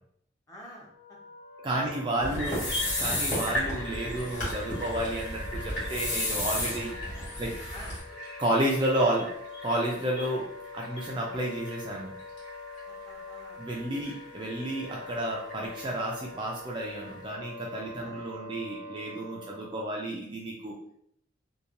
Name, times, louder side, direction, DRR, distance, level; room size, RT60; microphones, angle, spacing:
voice 1, 0.5-0.9 2.2-2.5 7.7-7.9 12.9-13.6 13.9-14.0 18.0-18.2, equal, 20° left, -4 dB, 0.6 m, -47 dB
Wind instrument woodwind instrument, 0.8-19.9, left 2 dB, 65° left, 0.8 m, -45 dB
voice 2, 1.6-2.7 3.0-6.9 7.4-7.5 8.4-9.3 9.6-10.4 10.7-12.1 13.6-20.7, right 1 dB, 25° right, -2 dB, 0.3 m, -31 dB
sound 1, 2.2-8.0, left 1 dB, 40° left, 1.3 m, -33 dB
sound 2, 2.4-17.3, left 1 dB, 90° left, 1.4 m, -42 dB
2.8 x 2.2 x 2.5 m, 0.68 s
head